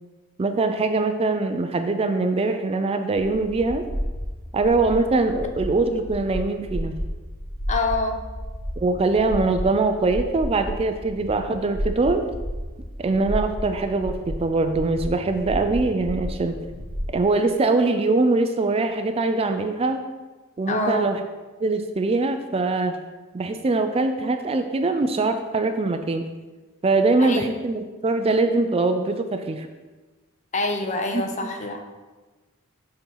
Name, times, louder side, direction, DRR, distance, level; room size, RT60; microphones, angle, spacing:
voice 1, 0.4-3.9 4.5-7.0 8.8-12.2 13.0-16.6 17.1-20.0 20.6-21.2 21.6-23.0 23.3-26.3 26.8-29.7 31.1-31.5, right 3 dB, 25° right, 7 dB, 0.4 m, -22 dB
sound 1, 3.1-17.1, equal, 80° left, 1.6 m, -32 dB
voice 2, 7.7-8.2 20.7-21.1 27.2-27.5 30.5-31.8, left 2 dB, 35° left, 5 dB, 0.8 m, -26 dB
6.8 x 4.3 x 5.5 m, 1.3 s
head